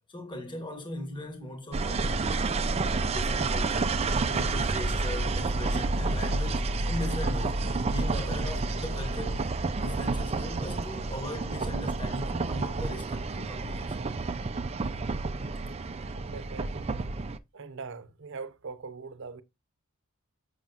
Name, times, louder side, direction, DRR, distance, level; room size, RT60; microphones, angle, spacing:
voice 1, 0.1-2.4 2.9-4.0 4.3-9.4 9.8-14.0, left 1 dB, 20° left, 1.6 m, -39 dB
sound 1, 1.7-17.4, right 3 dB, 30° right, 0.4 m, -29 dB
voice 2, 16.1-16.8 17.5-19.4, right 4 dB, 55° right, 0.8 m, -42 dB
7.3 x 6.4 x 2.5 m
head